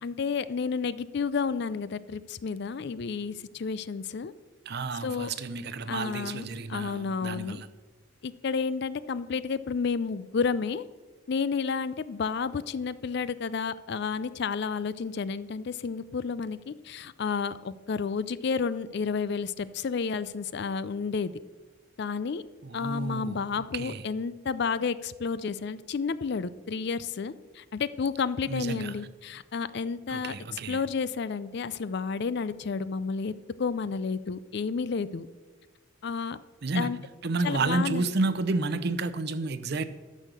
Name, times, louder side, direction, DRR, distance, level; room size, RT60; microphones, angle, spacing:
voice 1, 0.0-4.3 5.0-5.3 5.9-6.4 6.7-7.6 8.2-10.8 11.3-21.3 22.0-22.4 22.7-30.3 30.7-33.3 33.6-35.3 36.0-36.4 36.7-37.0 37.4-38.1, left 5 dB, 50° left, 0.4 m, -31 dB
voice 2, 4.7-7.7 22.6-24.0 28.5-29.0 30.1-30.8 36.6-36.9 37.2-39.9, right 3 dB, 50° right, 0.6 m, -31 dB
12.5 x 6.4 x 6.7 m
head